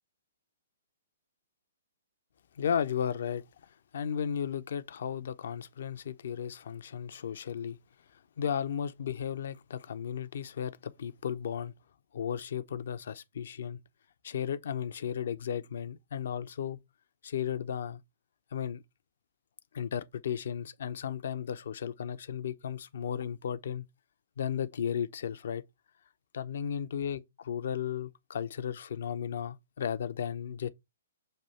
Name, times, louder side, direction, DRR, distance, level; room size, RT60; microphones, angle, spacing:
voice 1, 2.5-3.4 3.9-7.8 8.4-11.7 12.1-13.8 14.2-16.8 17.2-18.0 18.5-18.8 19.7-23.8 24.4-25.6 26.3-30.7, left 8 dB, 60° left, 0.7 m, -34 dB
6.6 x 2.7 x 5.6 m
figure-of-eight pair, 125°, 0 cm